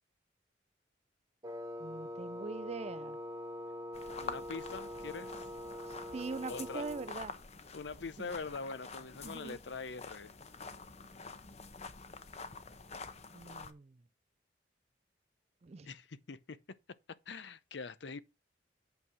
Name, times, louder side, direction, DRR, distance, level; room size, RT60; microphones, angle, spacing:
Wind instrument woodwind instrument, 1.4-7.2, left 1 dB, 20° right, 1.3 m, -44 dB
voice 1, 1.8-3.2 5.9-7.3 8.2-8.3 9.2-9.6 13.3-14.0 15.6-15.9, right 4 dB, 35° right, 0.4 m, -42 dB
sound 1, 3.9-13.7, left 4 dB, 40° left, 0.9 m, -48 dB
voice 2, 4.2-5.5 6.5-6.9 7.7-10.3 15.8-16.6 17.3-18.2, left 4 dB, 75° left, 0.7 m, -43 dB
8.4 x 4.7 x 6.2 m
head